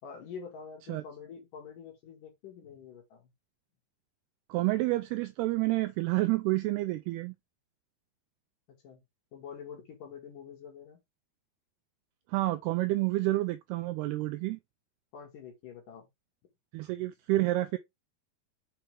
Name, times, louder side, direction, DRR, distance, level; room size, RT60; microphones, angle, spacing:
voice 1, 0.0-3.3 8.8-9.0 9.3-11.0 15.1-16.1, left 6 dB, 55° left, 2.9 m, -46 dB
voice 2, 4.5-7.3 12.3-14.6 16.7-17.8, right 18 dB, 90° right, 2.3 m, -29 dB
6.5 x 5.8 x 3.4 m
omnidirectional pair, 5.2 m